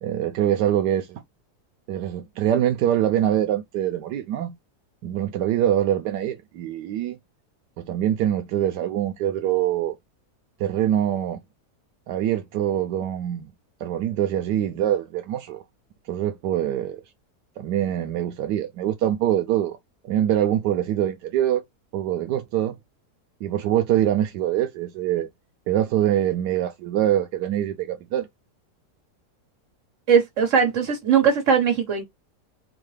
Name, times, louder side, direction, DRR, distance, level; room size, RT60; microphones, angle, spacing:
voice 1, 0.0-1.2 1.9-4.5 5.0-7.2 7.8-10.0 10.6-11.4 12.1-13.5 13.8-15.6 16.1-17.0 17.6-19.8 20.0-21.6 21.9-22.7 23.4-25.3 25.7-28.3, right 11 dB, 85° right, 1.2 m, -24 dB
voice 2, 30.1-32.0, right 6 dB, 50° right, 1.7 m, -19 dB
4.6 x 2.2 x 3.2 m
omnidirectional pair, 1.8 m